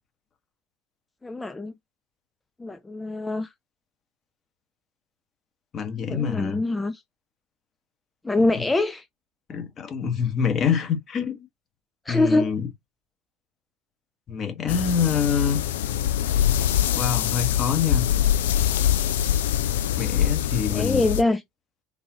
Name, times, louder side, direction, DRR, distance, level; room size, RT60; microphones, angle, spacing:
voice 1, 1.2-1.7 2.6-3.5 6.1-7.0 8.2-9.1 12.1-12.6 20.7-21.4, left 2 dB, 15° left, 0.4 m, -24 dB
voice 2, 5.7-6.6 9.5-11.5 12.1-12.7 14.3-15.6 16.9-18.1 20.0-21.0, left 7 dB, 40° left, 1.4 m, -25 dB
sound 1, 14.7-21.2, left 11 dB, 75° left, 0.4 m, -23 dB
3.8 x 2.8 x 2.9 m
hypercardioid pair, 70°, 0 cm